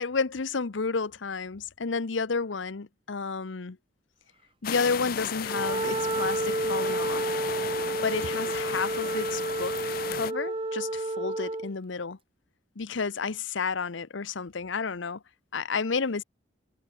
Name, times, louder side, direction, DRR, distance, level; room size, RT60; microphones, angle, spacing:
voice 1, 0.0-3.8 4.6-7.3 8.0-12.2 12.8-15.2 15.5-16.2, left 4 dB, 75° left, 0.8 m, -31 dB
sound 1, 4.6-10.3, left 8 dB, 50° left, 0.4 m, -35 dB
Wind instrument woodwind instrument, 5.4-11.7, right 2 dB, 25° right, 0.7 m, -30 dB
head